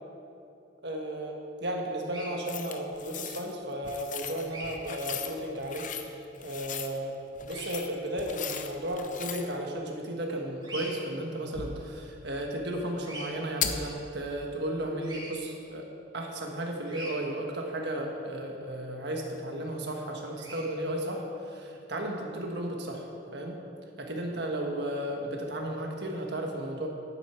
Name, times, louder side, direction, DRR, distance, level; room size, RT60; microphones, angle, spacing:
voice 1, 0.8-5.9 6.4-7.2 7.4-15.9 16.1-23.6 24.0-26.9, right 1 dB, 65° right, 1 dB, 1.5 m, -34 dB
Bird vocalization bird call bird song, 2.0-2.3 4.5-4.7 7.5-7.7 10.6-10.9 13.0-13.3 15.0-15.3 16.9-17.1 20.3-20.6, right 1 dB, 25° right, 2.5 m, -41 dB
sound 1, 2.5-3.5 3.8-6.1 6.3-7.0 7.4-9.5 11.5-12.0 13.6-14.0, left 8 dB, 45° left, 0.7 m, -37 dB
11.0 x 9.5 x 4.5 m, 2.7 s
head